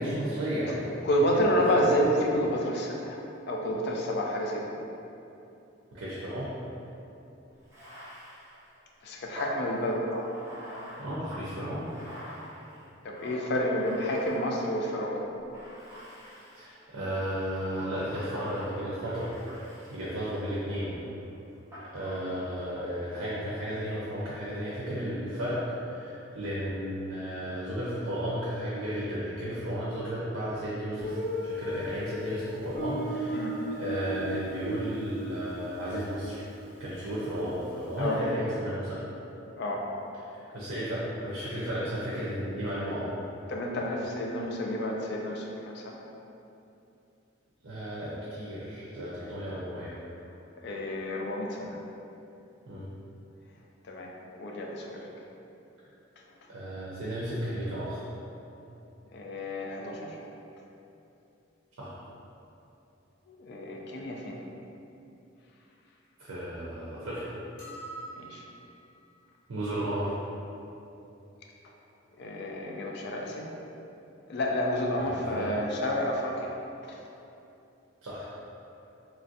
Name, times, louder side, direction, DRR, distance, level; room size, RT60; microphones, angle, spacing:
voice 1, 0.0-1.1 1.3-1.5 5.9-6.5 11.0-11.9 16.5-19.3 19.9-21.0 21.9-33.4 33.8-36.4 36.8-39.0 40.3-43.1 47.6-49.9 51.6-51.7 52.7-52.9 56.5-58.1 61.8-62.0 66.2-67.3 69.5-70.2 75.1-75.5 78.0-78.3, equal, 80° right, -8 dB, 0.5 m, -33 dB
voice 2, 1.0-3.2 3.5-4.8 9.0-10.1 13.0-15.2 33.3-33.6 38.0-38.2 39.6-39.9 43.5-46.0 50.5-51.8 53.9-54.1 54.4-55.1 59.1-60.2 63.3-64.4 68.1-68.5 72.2-73.6 74.3-76.6 76.8-77.0, equal, 55° left, 0 dB, 0.3 m, -30 dB
Bathtub (filling or washing), 7.6-15.0 15.5-16.8 17.4-20.6 21.7-22.7, equal, 15° right, 0.6 m, -45 dB
Guitar, 31.0-37.7, equal, 10° left, 1.2 m, -37 dB
sound 1, 67.6-68.9, right 2 dB, 75° left, 0.8 m, -44 dB
3.1 x 2.5 x 2.6 m, 2.8 s
head